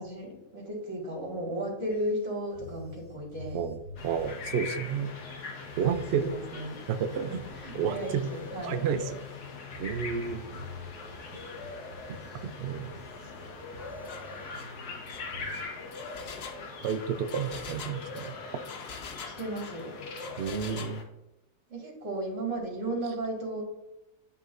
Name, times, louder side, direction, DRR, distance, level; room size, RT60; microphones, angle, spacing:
voice 1, 0.0-3.6 6.1-6.8 7.2-8.8 19.2-19.9 21.7-23.6, right 1 dB, 50° right, -2 dB, 2.4 m, -35 dB
sound 1, 1.9-15.6, left 1 dB, 65° right, 1.8 m, -49 dB
voice 2, 3.5-5.1 5.8-6.3 6.9-7.4 7.7-8.3 8.6-9.2 9.8-10.4 12.4-12.9 16.8-18.3 20.4-21.0, right 7 dB, 85° right, 9 dB, 0.5 m, -31 dB
sound 2, 4.0-21.0, left 4 dB, 85° left, 1.5 m, -42 dB
Engine, 14.0-14.2 14.5-14.7 15.1-19.8 20.2-21.0, left 6 dB, 55° left, 0.7 m, -44 dB
11.0 x 3.7 x 2.5 m, 0.92 s
omnidirectional pair, 1.6 m